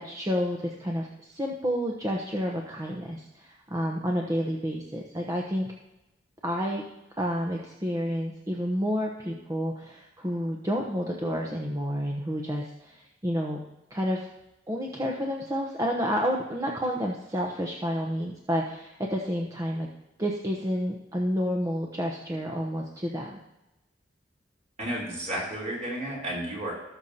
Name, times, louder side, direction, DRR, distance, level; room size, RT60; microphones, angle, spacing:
voice 1, 0.0-5.7 6.4-6.8 7.2-13.6 13.9-14.3 14.7-19.9 20.2-23.4, equal, 20° right, -1 dB, 0.9 m, -30 dB
voice 2, 24.8-26.7, right 1 dB, 45° right, -3 dB, 3.7 m, -32 dB
18.5 x 6.6 x 2.8 m, 0.95 s
head